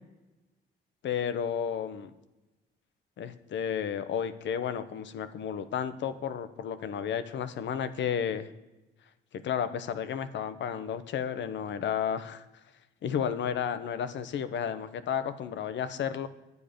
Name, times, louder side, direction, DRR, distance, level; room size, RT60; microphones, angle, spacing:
voice 1, 1.0-2.1 3.2-8.5 9.3-12.4 13.0-16.3, left 8 dB, 65° left, 11 dB, 0.8 m, -32 dB
9.5 x 9.3 x 5.1 m, 1.1 s
cardioid pair, 90°, 20 cm